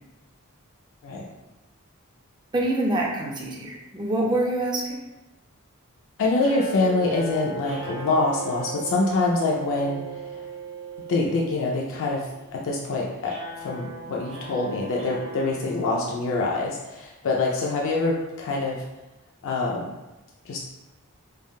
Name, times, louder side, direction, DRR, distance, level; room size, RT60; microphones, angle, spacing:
voice 1, 2.5-5.0, right 1 dB, 20° right, -2 dB, 0.4 m, -25 dB
voice 2, 6.2-10.2 11.1-18.8 19.4-20.0 20.5-20.6, left 3 dB, 60° left, -2 dB, 0.4 m, -25 dB
sound 1, 6.4-16.6, right 4 dB, 55° right, 0.9 m, -38 dB
3.3 x 2.2 x 2.3 m, 1.0 s
head